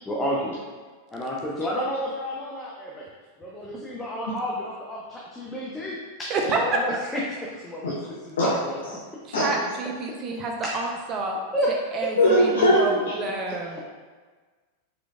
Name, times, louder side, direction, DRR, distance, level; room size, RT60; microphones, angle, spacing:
voice 1, 0.1-0.6 1.1-3.1 3.4-7.9 8.2-8.8 11.5-11.8 12.4-13.0, equal, 15° left, -4 dB, 0.6 m, -31 dB
voice 2, 6.3-6.8 9.3-11.4 11.9-12.9 13.2-13.8, right 3 dB, 30° right, 1 dB, 0.5 m, -28 dB
voice 3, 12.2-13.1, equal, 65° left, -5 dB, 0.6 m, -20 dB
4.6 x 3.8 x 2.3 m, 1.4 s
figure-of-eight pair, 90°, 0 cm